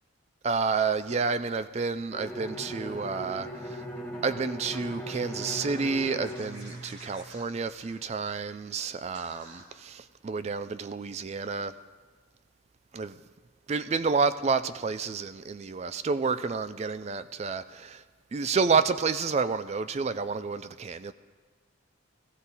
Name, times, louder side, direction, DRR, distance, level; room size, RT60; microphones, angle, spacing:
voice 1, 0.4-3.8 4.2-11.7 12.9-13.2 13.7-18.0 18.3-21.1, right 4 dB, 30° right, 0.3 m, -29 dB
Bowed string instrument, 2.1-7.8, right 1 dB, 10° left, 1.6 m, -39 dB
Scratching (performance technique), 5.1-8.4 8.7-8.8 9.1-9.6, right 1 dB, 65° right, 2.6 m, -50 dB
15.5 x 14.5 x 4.0 m
head